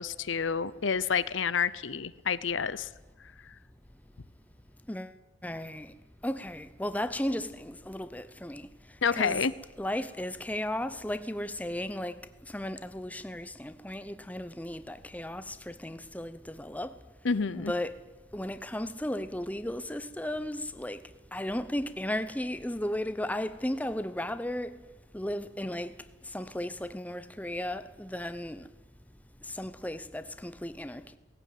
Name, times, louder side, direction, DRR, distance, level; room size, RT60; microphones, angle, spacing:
voice 1, 0.0-2.9 9.0-9.5 17.2-17.7, left 6 dB, 70° left, 0.7 m, -29 dB
voice 2, 5.4-5.9 6.2-8.7 9.1-9.5 9.8-12.2 12.5-17.0 17.6-18.1 18.3-21.0 21.3-24.8 25.1-26.0 26.2-28.7 29.4-31.2, left 1 dB, 10° left, 0.7 m, -35 dB
18.5 x 17.0 x 9.3 m
head